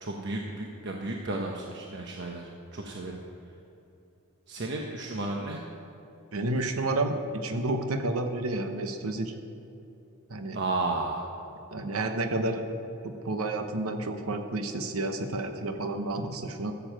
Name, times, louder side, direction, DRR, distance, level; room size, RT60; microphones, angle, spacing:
voice 1, 0.0-3.2 4.5-5.6 10.5-11.2, right 2 dB, 55° right, 0 dB, 1.0 m, -33 dB
voice 2, 6.3-9.3 10.3-10.6 11.7-12.6 13.0-16.7, right 2 dB, 85° right, 6 dB, 1.0 m, -30 dB
14.5 x 7.1 x 7.6 m, 2.8 s
head